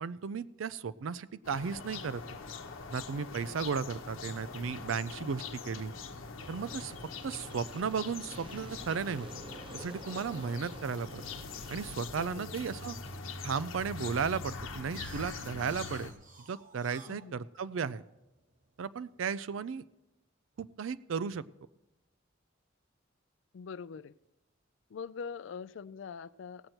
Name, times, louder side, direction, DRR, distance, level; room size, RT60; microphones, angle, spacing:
voice 1, 0.0-2.2 2.9-5.9 6.5-7.0 7.2-9.3 9.7-11.2 11.7-13.0 13.4-16.1 16.4-18.0 18.8-19.8 20.6-21.4, right 6 dB, 80° right, 17 dB, 0.4 m, -35 dB
sound 1, 1.4-16.1, left 4 dB, 85° left, 0.9 m, -43 dB
sound 2, 6.4-12.0, right 2 dB, 25° right, 0.8 m, -50 dB
voice 2, 12.2-12.6 17.0-17.5 23.5-24.2 24.9-26.7, left 6 dB, 65° left, 17 dB, 0.4 m, -43 dB
sound 3, 14.4-19.2, right 4 dB, 40° right, 1.1 m, -52 dB
17.5 x 7.8 x 4.4 m, 0.94 s
head